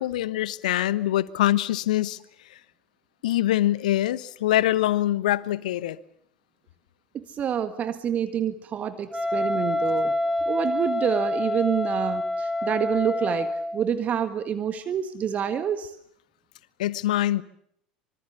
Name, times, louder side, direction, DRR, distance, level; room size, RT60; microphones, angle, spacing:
voice 1, 0.0-2.2 2.5-2.6 3.2-6.0 16.8-17.4, left 14 dB, 65° left, 1.1 m, -24 dB
voice 2, 7.1-10.1 10.4-13.5 13.7-15.9, right 8 dB, 35° right, 1.6 m, -27 dB
Wind instrument woodwind instrument, 9.1-13.8, left 1 dB, 5° right, 5.0 m, -27 dB
26.0 x 24.5 x 7.0 m
figure-of-eight pair, 75°, 4 cm